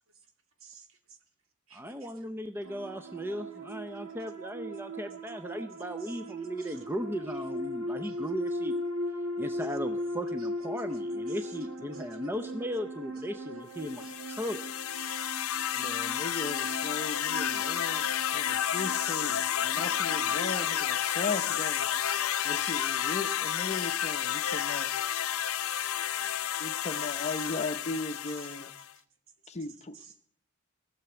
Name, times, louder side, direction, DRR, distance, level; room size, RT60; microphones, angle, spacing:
voice 1, 0.6-1.2 1.7-2.3 2.6-2.9 3.9-4.0 5.5-6.9 7.2-7.5 7.9-8.2 9.6-9.8 10.4-10.5 10.9-12.3 13.5-13.6 14.0-14.2 14.9-17.7 19.3-19.5 19.8-19.9 20.3-20.6 21.9-22.9 24.3-24.7 25.6-27.5 28.3-28.6 28.9-29.0 29.4-30.2, right 6 dB, 65° right, 5 dB, 2.2 m, -56 dB
voice 2, 1.7-8.8 9.4-14.6, equal, 10° right, 8 dB, 0.6 m, -37 dB
sound 1, 2.6-20.8, equal, 85° right, 1.8 m, -38 dB
sound 2, 13.8-28.9, left 10 dB, 70° left, 0.6 m, -31 dB
voice 3, 15.7-21.9 22.4-24.9 26.2-26.3 26.6-28.7 29.5-30.0, left 3 dB, 30° left, 10 dB, 0.7 m, -37 dB
16.5 x 6.9 x 9.5 m, 0.63 s
head